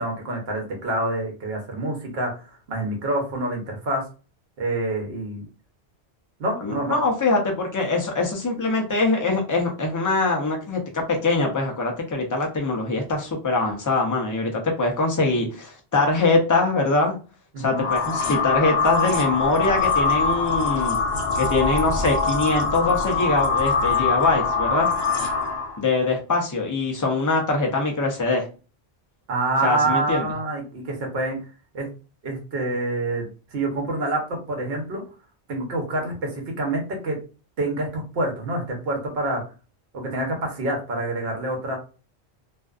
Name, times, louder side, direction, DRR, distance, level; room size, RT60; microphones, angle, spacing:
voice 1, 0.0-4.0 4.6-5.4 6.4-7.0 17.5-17.8 29.3-31.4 31.7-31.9 32.2-35.0 35.5-37.2 37.6-39.4 39.9-41.8, right 2 dB, 70° right, 1 dB, 1.0 m, -27 dB
voice 2, 6.6-17.2 17.6-21.0 21.4-24.9 25.8-28.5 29.6-30.3, left 3 dB, 30° left, 1 dB, 0.3 m, -23 dB
sound 1, 17.7-25.8, left 4 dB, 70° left, 0.9 m, -23 dB
2.5 x 2.3 x 2.3 m, 0.34 s
omnidirectional pair, 1.1 m